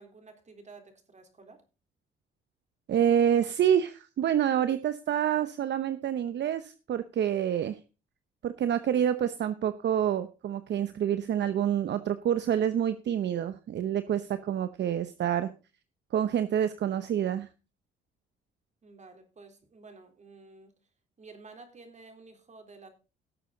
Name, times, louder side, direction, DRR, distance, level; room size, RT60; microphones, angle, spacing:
voice 1, 0.0-1.6 14.1-14.4 18.8-20.7 21.2-22.9, right 3 dB, 35° right, 5 dB, 3.8 m, -52 dB
voice 2, 2.9-7.8 8.4-15.5 16.1-17.5, right 9 dB, 60° right, 12 dB, 0.9 m, -27 dB
18.0 x 7.0 x 3.9 m, 0.32 s
cardioid pair, 90°, 20 cm